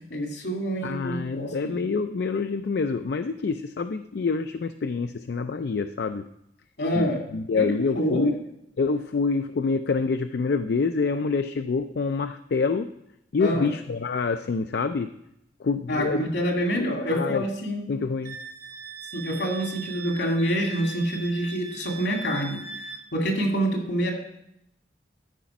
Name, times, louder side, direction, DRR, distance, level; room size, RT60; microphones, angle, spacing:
voice 1, 0.1-1.7 6.8-7.2 7.5-8.3 13.4-13.7 15.9-17.8 19.1-24.1, equal, 80° left, 1 dB, 2.3 m, -27 dB
voice 2, 0.8-6.2 6.9-8.4 8.8-12.9 13.3-15.1 15.6-16.3 16.8-17.4 17.9-18.4, left 4 dB, 60° left, 9 dB, 0.4 m, -27 dB
Wind instrument woodwind instrument, 18.2-23.0, right 4 dB, 55° right, 1.4 m, -40 dB
12.5 x 5.1 x 5.9 m, 0.80 s
head